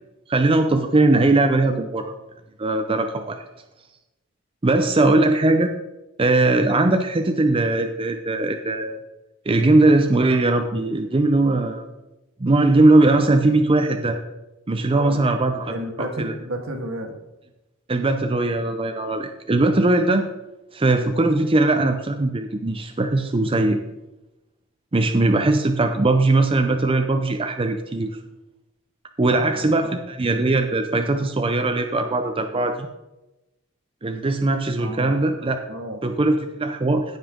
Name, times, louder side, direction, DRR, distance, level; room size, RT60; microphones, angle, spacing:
voice 1, 0.3-2.1 2.6-3.4 4.6-5.7 6.2-9.0 9.5-11.8 12.4-14.2 14.7-15.7 16.0-16.3 17.9-20.2 20.7-23.8 24.9-28.2 29.2-32.9 34.0-35.6 36.0-37.0, right 2 dB, 25° right, 6 dB, 0.6 m, -20 dB
voice 2, 14.9-15.2 15.7-17.2 29.2-30.0 34.8-35.2 35.7-36.0, right 1 dB, 75° right, 4 dB, 1.6 m, -31 dB
16.5 x 5.6 x 3.7 m, 0.98 s
head